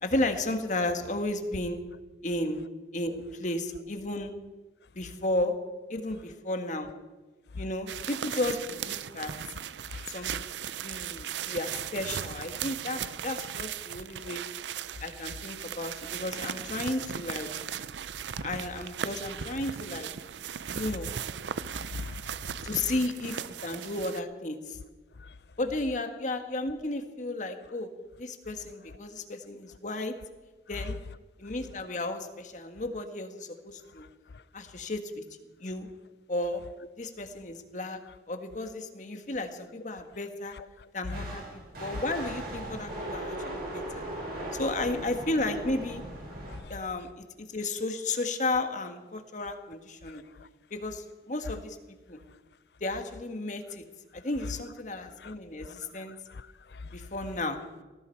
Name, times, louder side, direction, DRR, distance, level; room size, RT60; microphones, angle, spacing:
voice 1, 0.0-1.8 2.2-2.6 2.9-4.3 4.9-5.5 5.9-6.9 7.6-9.3 10.1-10.4 10.8-14.4 15.0-17.5 18.4-20.1 20.7-21.1 22.6-24.8 25.6-27.9 28.2-30.1 30.7-31.0 31.4-34.1 34.5-35.2 35.6-35.9 36.3-36.6 37.0-38.0 38.3-40.5 40.9-41.4 41.8-44.0 44.6-46.0 46.7-47.2 47.5-50.2 50.7-51.8 52.1-52.2 52.8-53.8 54.1-56.2 56.9-57.6, left 2 dB, 45° left, 1.5 m, -33 dB
sound 1, 7.9-24.2, right 8 dB, 90° right, 0.5 m, -37 dB
voice 2, 21.7-22.3 25.2-25.3 30.7-30.9 34.3-34.4 40.5-40.9 44.1-44.2 46.4-46.7 50.1-50.5 55.2-55.3 55.6-57.0, left 3 dB, 70° left, 0.5 m, -43 dB
sound 2, 41.1-46.6, right 1 dB, 55° right, 5.6 m, -38 dB
19.0 x 15.0 x 4.6 m
head